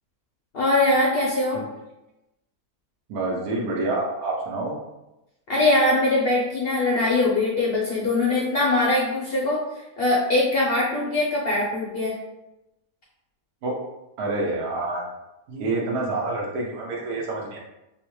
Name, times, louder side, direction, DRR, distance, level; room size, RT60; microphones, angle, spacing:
voice 1, 0.5-1.6 5.5-12.2, left 2 dB, 60° left, -4 dB, 0.6 m, -22 dB
voice 2, 3.1-4.8 13.6-13.8 14.2-15.0 15.5-17.6, right 2 dB, 85° right, -1 dB, 1.2 m, -27 dB
3.7 x 2.1 x 3.0 m, 0.96 s
omnidirectional pair, 1.6 m